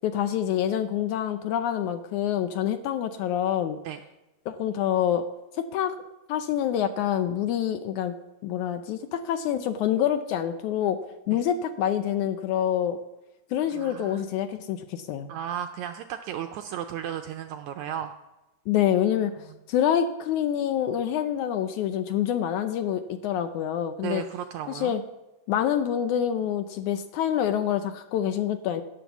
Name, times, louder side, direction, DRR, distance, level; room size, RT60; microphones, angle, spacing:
voice 1, 0.0-3.8 4.5-5.2 5.6-6.0 6.3-8.2 8.4-11.0 11.3-13.0 13.5-15.3 18.7-19.3 19.7-24.2 24.7-25.0 25.5-28.8, left 10 dB, 75° left, 9 dB, 1.9 m, -26 dB
voice 2, 13.7-14.2 15.3-18.1 24.0-25.0, right 10 dB, 80° right, 7 dB, 1.7 m, -34 dB
17.5 x 6.0 x 7.1 m, 1.0 s
omnidirectional pair, 3.9 m